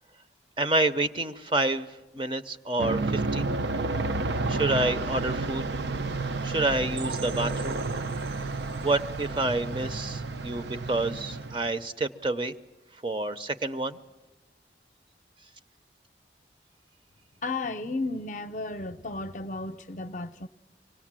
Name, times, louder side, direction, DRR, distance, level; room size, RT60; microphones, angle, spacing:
voice 1, 0.6-1.9 2.1-3.4 4.5-5.7 6.4-7.8 8.8-12.5 13.0-14.0, right 2 dB, 30° right, 0.6 m, -28 dB
Aircraft, 2.8-11.8, right 3 dB, 80° right, 0.6 m, -31 dB
sound 1, 7.0-10.6 11.0-11.1 11.5-11.6 12.1-12.2, right 5 dB, 60° right, 0.9 m, -45 dB
voice 2, 17.4-20.5, left 2 dB, 45° left, 0.6 m, -33 dB
25.0 x 18.5 x 7.5 m
head